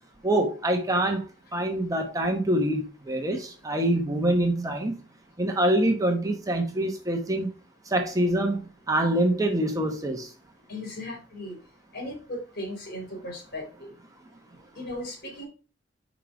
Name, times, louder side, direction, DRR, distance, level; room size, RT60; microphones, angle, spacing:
voice 1, 0.2-1.2 1.5-5.0 5.4-7.5 7.9-8.6 8.9-10.3, right 1 dB, 20° right, 1.0 m, -25 dB
voice 2, 10.7-11.6 11.9-13.9 14.7-15.5, left 1 dB, 55° left, 3.2 m, -37 dB
5.4 x 5.1 x 5.0 m
head